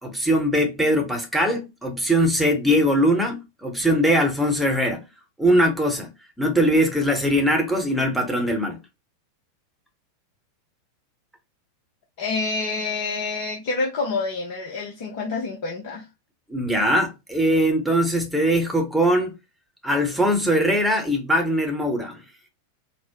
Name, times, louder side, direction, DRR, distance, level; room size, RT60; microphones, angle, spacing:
voice 1, 0.0-5.0 5.4-6.1 6.4-8.8 16.5-19.3 19.8-22.2, equal, ahead, 0.9 m, -21 dB
voice 2, 12.2-16.0, left 3 dB, 50° left, 0.8 m, -27 dB
4.1 x 2.0 x 2.9 m
figure-of-eight pair, 90°, 0 cm